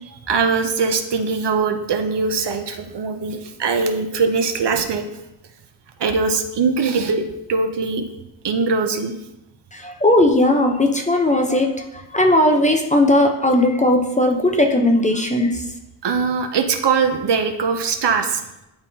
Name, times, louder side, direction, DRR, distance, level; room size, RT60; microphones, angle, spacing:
voice 1, 0.3-5.0 6.0-7.2 7.5-8.0 8.4-9.1 16.0-18.4, right 5 dB, 55° right, 6 dB, 0.7 m, -21 dB
voice 2, 9.7-11.7 12.1-15.6, left 1 dB, 15° left, 3 dB, 0.7 m, -17 dB
10.5 x 3.5 x 2.8 m, 0.91 s
cardioid pair, 70°, 49 cm